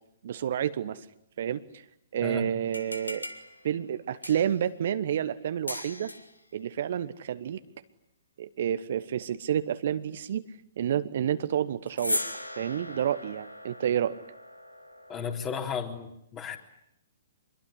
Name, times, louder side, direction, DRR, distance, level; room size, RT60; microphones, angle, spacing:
voice 1, 0.2-1.0 1.4-1.6 2.1-3.2 3.6-6.1 6.5-7.6 8.4-10.4 10.8-12.2 12.6-14.2, right 9 dB, 55° right, 12 dB, 1.1 m, -29 dB
sound 1, 2.6-4.7 5.7-6.4 11.9-15.4, left 1 dB, 90° left, 2.2 m, -38 dB
voice 2, 15.1-16.6, left 6 dB, 25° left, 4 dB, 3.8 m, -34 dB
25.5 x 22.0 x 9.9 m, 0.76 s
figure-of-eight pair, 120°, 0 cm